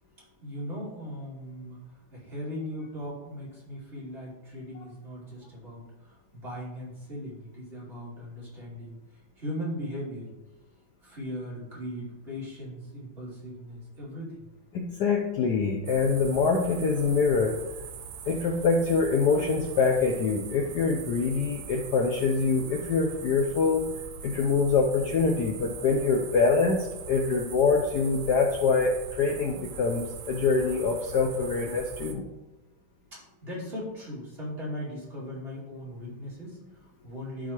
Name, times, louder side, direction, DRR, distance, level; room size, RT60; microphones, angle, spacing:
voice 1, 0.4-1.8 2.1-9.0 9.4-10.3 11.0-14.5 33.1-37.5, equal, 30° right, -8 dB, 2.6 m, -38 dB
voice 2, 14.7-17.6 18.3-23.9 24.2-32.2, left 4 dB, 70° left, 3 dB, 1.0 m, -25 dB
sound 1, 15.9-32.1, right 6 dB, 80° right, 1.5 m, -42 dB
11.5 x 4.0 x 2.9 m, 1.1 s
omnidirectional pair, 2.2 m